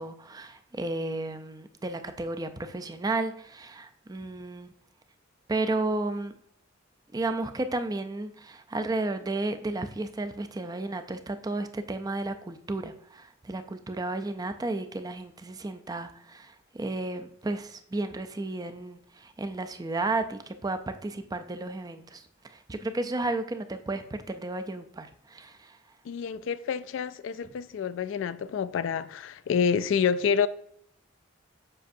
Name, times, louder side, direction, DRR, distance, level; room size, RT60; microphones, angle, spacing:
voice 1, 0.0-4.7 5.5-6.3 7.1-25.8, right 2 dB, 20° right, 0.4 m, -33 dB
voice 2, 26.1-30.5, left 7 dB, 75° left, 0.3 m, -28 dB
7.7 x 5.0 x 2.6 m
head